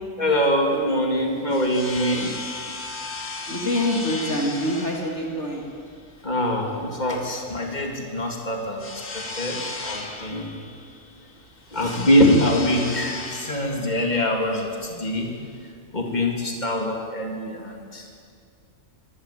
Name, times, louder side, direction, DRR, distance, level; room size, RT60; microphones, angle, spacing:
voice 1, 0.2-2.3 6.2-10.6 11.7-15.3 15.9-18.1, left 1 dB, 30° left, 0 dB, 3.7 m, -24 dB
sound 1, 1.1-15.7, left 3 dB, 90° left, 3.2 m, -36 dB
voice 2, 3.5-5.7, left 1 dB, 50° left, 0 dB, 3.5 m, -25 dB
24.5 x 24.0 x 8.9 m, 2.2 s
omnidirectional pair, 1.5 m